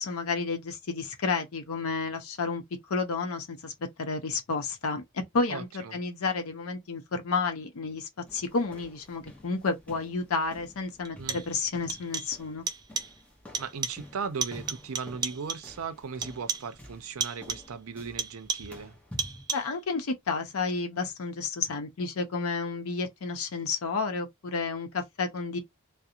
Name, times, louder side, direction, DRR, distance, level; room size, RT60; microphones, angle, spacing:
voice 1, 0.0-2.6 2.9-3.7 4.0-12.6 19.5-25.6, left 4 dB, 70° left, 0.6 m, -31 dB
voice 2, 5.5-6.0 11.2-11.4 13.6-18.9, right 5 dB, 70° right, 0.5 m, -37 dB
sound 1, 8.3-19.5, left 1 dB, 5° left, 0.7 m, -50 dB
sound 2, 10.0-10.1 11.0-11.6 11.9-12.4 12.7-13.2 13.5-14.1 14.4-15.8 16.2-16.8 17.2-17.8 18.2-18.8 19.2-19.8, right 5 dB, 20° right, 0.3 m, -34 dB
2.4 x 2.0 x 2.8 m
head